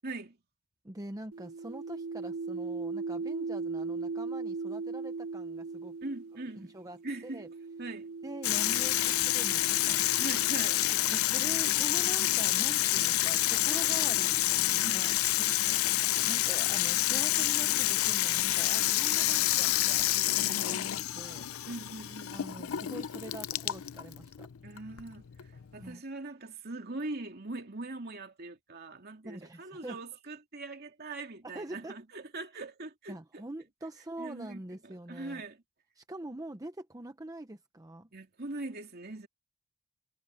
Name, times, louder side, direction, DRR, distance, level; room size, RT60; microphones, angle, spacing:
voice 1, 0.0-0.4 6.0-6.7 7.0-7.5 7.8-8.1 10.2-10.9 14.8-15.9 21.7-22.4 24.6-33.5 34.2-35.6 38.1-39.3, right 2 dB, 50° right, 2.8 m, -42 dB
voice 2, 0.8-6.0 6.6-7.0 7.2-7.5 8.2-10.1 11.1-15.1 16.2-21.4 22.3-24.5 25.8-26.0 29.2-30.0 31.5-31.9 33.1-35.4 36.0-38.1, right 1 dB, 15° right, 0.8 m, -44 dB
sound 1, 1.3-11.7 12.6-16.3, right 4 dB, 85° right, 0.6 m, -40 dB
Water tap faucet / Sink (filling or washing), 8.4-25.9, left 15 dB, 80° left, 0.5 m, -28 dB
head